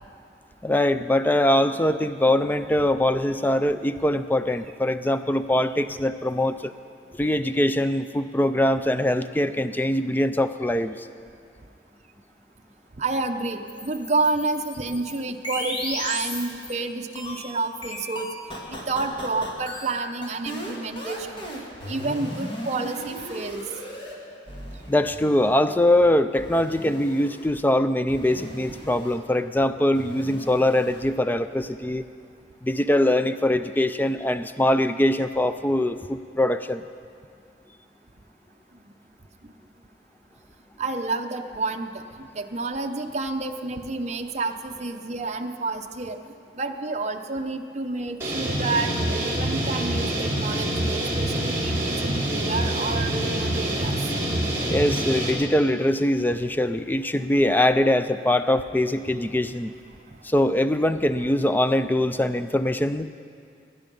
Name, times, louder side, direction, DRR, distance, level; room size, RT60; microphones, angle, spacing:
voice 1, 0.6-6.7 7.2-11.1 24.9-32.1 32.6-36.8 54.7-59.7 60.2-63.1, left 1 dB, 10° left, 11 dB, 0.4 m, -22 dB
voice 2, 13.0-18.3 18.7-23.6 38.8-38.9 39.4-39.5 40.8-46.2 46.5-53.9, right 3 dB, 40° right, 5 dB, 0.7 m, -29 dB
sound 1, 13.7-16.8 17.2-24.1 24.5-25.6 26.4-27.5 28.1-29.2 29.9-31.0, equal, 30° left, 1.9 m, -36 dB
sound 2, 48.2-55.3, right 1 dB, 15° right, 2.9 m, -26 dB
20.0 x 10.0 x 5.4 m, 2.3 s
head